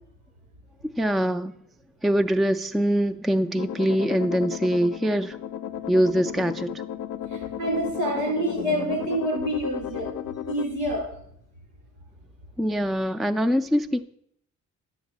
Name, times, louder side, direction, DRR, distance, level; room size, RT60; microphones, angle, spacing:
voice 1, 0.8-1.5 2.0-5.4 5.9-6.8 12.6-14.0, equal, ahead, 0.3 m, -23 dB
sound 1, 3.6-10.7, left 10 dB, 70° left, 0.5 m, -34 dB
voice 2, 7.3-10.1 10.5-11.1, right 1 dB, 90° right, 3.9 m, -27 dB
10.5 x 6.8 x 4.0 m
cardioid pair, 90°, 30 cm